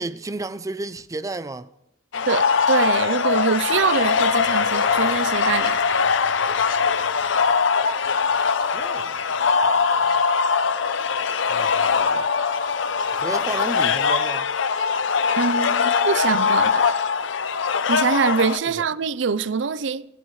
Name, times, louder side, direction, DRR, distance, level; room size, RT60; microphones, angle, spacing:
voice 1, 0.0-1.7 8.6-10.2 11.5-12.3 13.1-14.5 18.8-18.9, right 2 dB, 20° right, 0.5 m, -33 dB
sound 1, 2.1-18.6, left 5 dB, 90° left, 0.7 m, -21 dB
voice 2, 2.3-5.8 15.4-17.0 17.9-20.1, right 5 dB, 75° right, 0.5 m, -24 dB
27.5 x 14.5 x 3.2 m
head